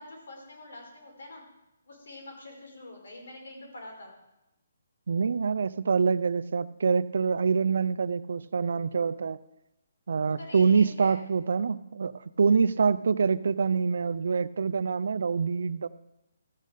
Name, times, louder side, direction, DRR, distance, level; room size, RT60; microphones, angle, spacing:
voice 1, 0.0-1.4 1.9-4.1 10.4-11.2, left 1 dB, 75° left, 0 dB, 5.2 m, -45 dB
voice 2, 5.1-9.4 10.1-15.9, right 5 dB, 65° right, 14 dB, 0.5 m, -25 dB
14.0 x 6.5 x 6.6 m, 0.91 s
hypercardioid pair, 170°, 0 cm